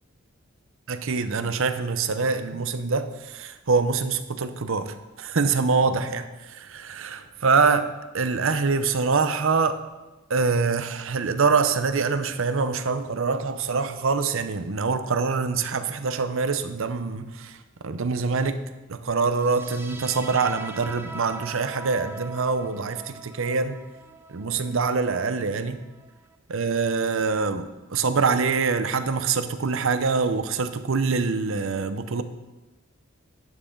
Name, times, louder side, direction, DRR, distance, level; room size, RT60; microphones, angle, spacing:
voice 1, 0.9-9.8 10.3-17.6 17.8-18.6 18.9-23.8 24.3-25.8 26.5-32.2, right 4 dB, 65° right, 10 dB, 0.7 m, -25 dB
sound 1, 19.3-26.4, right 3 dB, 10° right, 0.5 m, -42 dB
11.0 x 9.3 x 3.8 m, 1.1 s
head